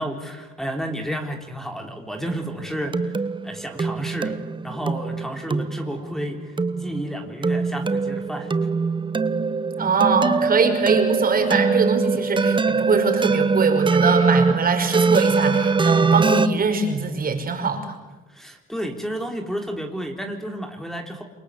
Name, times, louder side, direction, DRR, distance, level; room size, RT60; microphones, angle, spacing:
voice 1, 0.0-3.2 3.4-4.4 4.6-6.4 6.8-8.5 18.3-21.2, equal, ahead, 4 dB, 3.7 m, -31 dB
sound 1, 2.3-16.5, right 4 dB, 25° right, 1.1 m, -22 dB
voice 2, 9.8-17.9, right 4 dB, 45° right, 6 dB, 5.5 m, -22 dB
29.0 x 23.0 x 8.6 m, 1.1 s
cardioid pair, 90°, 20 cm